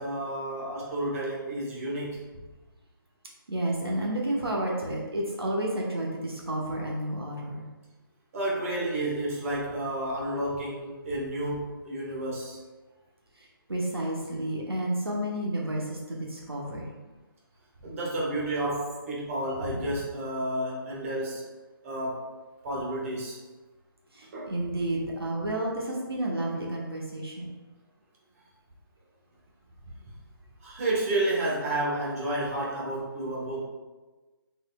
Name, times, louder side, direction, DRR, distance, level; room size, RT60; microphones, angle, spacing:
voice 1, 0.0-2.2 8.3-12.6 17.8-21.4 21.8-22.2 22.6-23.4 24.3-24.5 30.6-33.6, right 1 dB, 35° right, -4 dB, 1.3 m, -31 dB
voice 2, 3.5-7.7 13.7-16.9 24.1-27.5, right 1 dB, 80° right, -2 dB, 1.1 m, -31 dB
5.3 x 4.2 x 2.3 m, 1.2 s
figure-of-eight pair, 145°, 12 cm